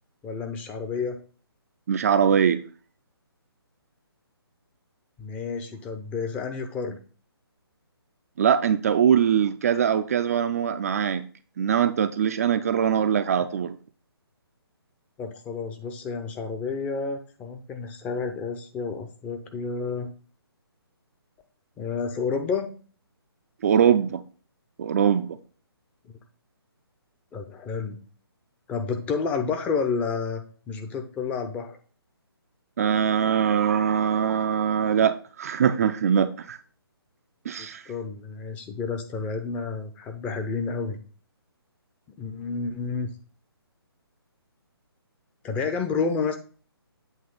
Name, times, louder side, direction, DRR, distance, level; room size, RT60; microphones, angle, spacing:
voice 1, 0.2-1.2 5.2-7.0 15.2-20.1 21.8-22.7 26.0-26.1 27.3-28.0 28.7-31.8 37.6-41.0 42.1-43.1 45.4-46.4, left 5 dB, 10° left, 0.5 m, -30 dB
voice 2, 1.9-2.6 8.4-11.3 11.6-13.8 23.6-24.2 24.8-25.4 32.8-36.6 37.5-37.8, right 8 dB, 35° right, 0.4 m, -22 dB
8.0 x 2.8 x 5.4 m
figure-of-eight pair, 145°, 13 cm